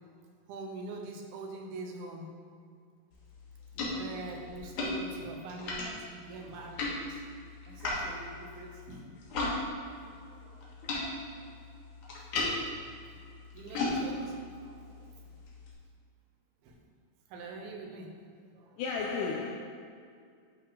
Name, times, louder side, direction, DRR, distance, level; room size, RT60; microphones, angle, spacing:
voice 1, 0.5-2.3 3.9-7.3 7.7-9.2 9.8-11.1 13.2-13.3 13.5-15.0 16.6-16.8 17.3-18.1 18.5-18.8, right 2 dB, 90° right, 2.8 m, -44 dB
sound 1, 3.1-9.6 9.8-15.7, left 2 dB, 65° left, 2.6 m, -37 dB
voice 2, 18.8-19.6, left 4 dB, 80° left, 1.8 m, -34 dB
11.0 x 4.7 x 3.5 m
omnidirectional pair, 4.2 m